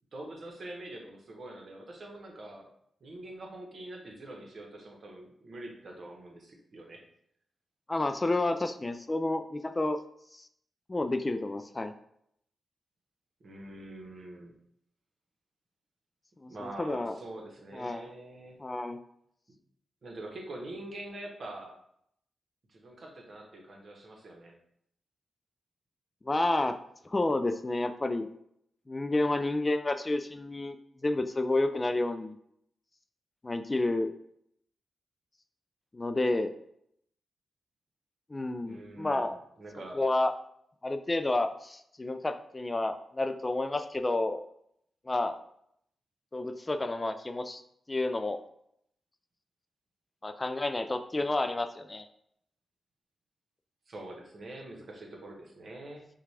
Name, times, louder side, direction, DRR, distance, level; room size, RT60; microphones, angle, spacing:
voice 1, 0.1-2.7 3.0-7.0 13.4-14.5 16.5-18.6 20.0-21.8 22.7-24.5 38.6-40.0 53.9-56.1, right 1 dB, 60° right, 1 dB, 1.1 m, -44 dB
voice 2, 7.9-10.0 10.4-10.5 10.9-11.9 16.4-17.2 17.7-18.1 18.6-19.0 26.3-26.8 27.0-28.3 28.9-30.8 31.0-32.4 33.4-34.1 35.9-36.5 38.3-39.4 39.8-40.3 40.8-44.4 45.1-45.4 46.3-47.6 47.9-48.4 50.2-52.1, left 2 dB, 30° left, 8 dB, 0.3 m, -30 dB
5.8 x 2.3 x 3.3 m, 0.72 s
cardioid pair, 55°, 0 cm